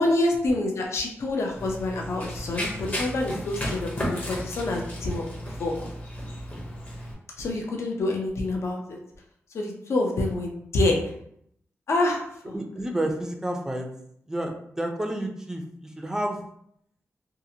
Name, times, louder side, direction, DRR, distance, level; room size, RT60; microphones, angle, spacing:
voice 1, 0.0-5.2 5.6-5.7 7.4-9.0 9.5-11.0 11.9-12.5, left 2 dB, 65° left, 1 dB, 0.5 m, -27 dB
Run, 1.6-7.1, equal, 30° left, 0.7 m, -34 dB
voice 2, 12.5-13.9 14.3-16.4, right 1 dB, 10° right, 3 dB, 0.4 m, -30 dB
2.7 x 2.4 x 2.7 m, 0.71 s
wide cardioid pair, 150°, 5 cm